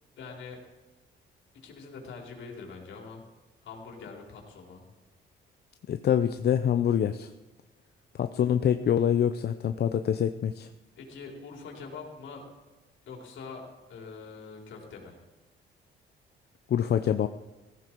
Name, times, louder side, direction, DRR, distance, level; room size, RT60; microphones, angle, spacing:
voice 1, 0.2-0.6 1.5-3.2 3.6-4.9 11.0-12.4 13.1-13.6 13.9-15.2, left 4 dB, 75° left, 0 dB, 4.2 m, -44 dB
voice 2, 5.9-7.3 8.2-10.7 16.7-17.3, left 9 dB, 55° left, 9 dB, 0.7 m, -25 dB
17.5 x 15.0 x 4.7 m, 1.2 s
cardioid pair, 90°, 20 cm